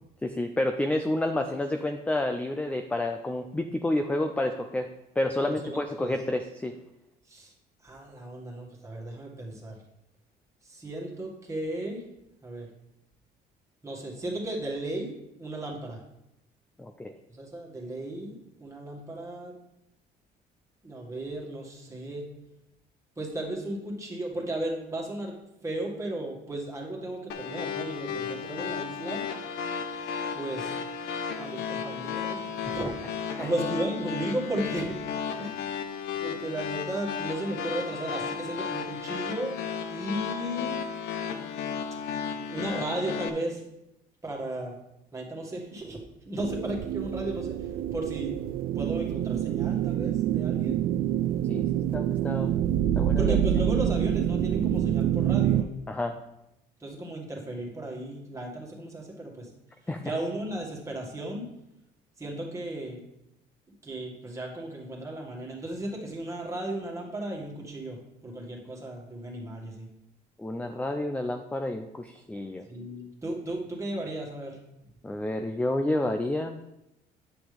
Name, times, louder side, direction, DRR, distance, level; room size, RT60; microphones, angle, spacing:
voice 1, 0.2-4.9 5.2-6.7 16.8-17.1 32.7-32.8 33.4-33.5 51.5-51.7 51.9-52.5 53.0-53.4 55.9-56.2 59.9-60.1 70.4-72.6 75.0-76.6, left 1 dB, 10° left, 6 dB, 0.4 m, -29 dB
voice 2, 5.4-6.1 7.3-7.5 7.8-9.8 10.6-12.0 12.4-12.7 13.8-16.0 17.3-19.5 20.8-22.3 23.2-25.3 25.6-29.2 30.3-30.8 31.3-33.0 33.4-35.0 35.4-35.7 36.1-39.5 39.9-40.8 42.3-43.6 44.2-44.8 45.1-46.0 46.2-48.3 48.7-50.8 53.2-55.7 56.8-59.5 59.8-61.5 62.2-63.0 63.8-69.9 72.7-74.6, right 1 dB, 20° right, -2 dB, 2.0 m, -35 dB
sound 1, 27.3-43.3, left 6 dB, 80° left, 0.8 m, -34 dB
sound 2, 46.4-55.6, right 11 dB, 60° right, 0.4 m, -26 dB
9.4 x 6.0 x 3.5 m, 0.87 s
cardioid pair, 110°, 17 cm